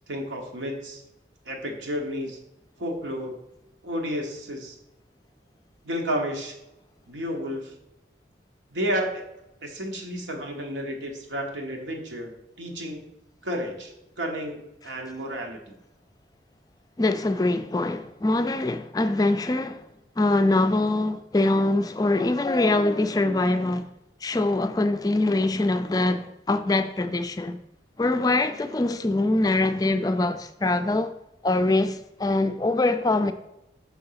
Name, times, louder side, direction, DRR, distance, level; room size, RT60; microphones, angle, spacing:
voice 1, 0.1-1.0 1.4-2.4 2.8-3.4 3.8-4.8 5.8-6.6 7.1-7.7 8.7-9.2 9.6-13.1 13.4-14.6 14.8-15.8, equal, 85° right, 1.1 m, -31 dB
voice 2, 17.0-19.9 20.2-23.9 24.2-27.6 28.0-31.2 31.4-33.3, left 2 dB, 20° left, 0.3 m, -23 dB
6.1 x 3.8 x 5.6 m
head